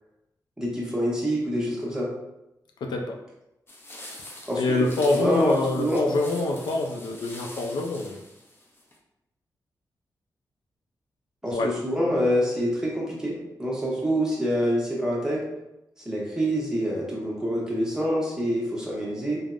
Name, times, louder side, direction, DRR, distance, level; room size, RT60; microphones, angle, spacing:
voice 1, 0.6-2.1 4.5-4.8 5.1-6.0 11.4-15.4 16.0-19.4, equal, 10° right, -4 dB, 0.8 m, -26 dB
voice 2, 2.8-3.2 4.6-8.2 11.5-11.7, left 2 dB, 85° left, 2 dB, 0.4 m, -25 dB
sound 1, 3.7-9.0, left 1 dB, 30° left, 0.6 m, -44 dB
3.3 x 2.0 x 2.4 m, 0.90 s
wide cardioid pair, 105°, 7 cm